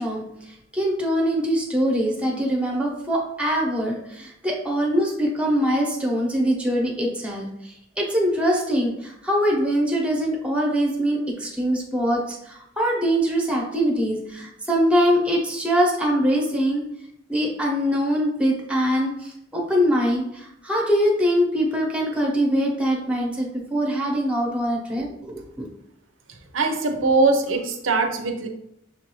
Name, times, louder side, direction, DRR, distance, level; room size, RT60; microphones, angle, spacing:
voice 1, 0.0-16.8 17.3-25.7, equal, 5° right, -1 dB, 0.9 m, -23 dB
voice 2, 26.5-28.5, right 3 dB, 90° right, 5 dB, 0.7 m, -21 dB
6.2 x 2.6 x 3.0 m, 0.77 s
head